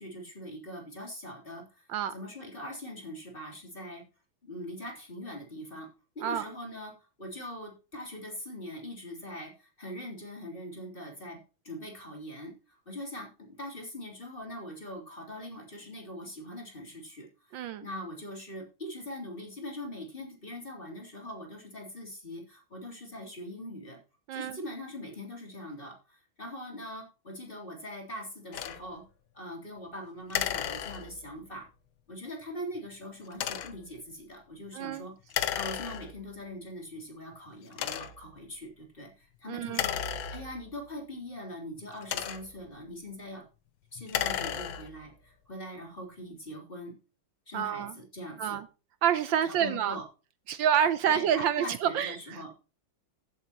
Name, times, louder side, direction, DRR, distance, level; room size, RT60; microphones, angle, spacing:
voice 1, 0.0-4.0 4.4-5.9 6.2-11.4 11.6-24.0 24.3-29.0 29.3-31.7 32.1-35.1 35.5-43.4 43.9-46.9 47.5-48.6 49.4-50.0 51.1-52.5, left 1 dB, 25° left, 3.6 m, -42 dB
voice 2, 17.5-17.8 24.3-24.6 34.7-35.1 39.5-39.8 47.5-47.9 48.4-48.6 49.0-50.0 50.5-52.5, right 9 dB, 75° right, 1.4 m, -28 dB
sound 1, 28.5-28.8 30.3-31.4 33.3-33.9 35.3-36.3 37.0-37.1 37.7-38.3 39.7-40.8 41.8-42.7 44.0-45.1, left 10 dB, 80° left, 1.6 m, -34 dB
16.0 x 8.2 x 3.0 m
omnidirectional pair, 2.2 m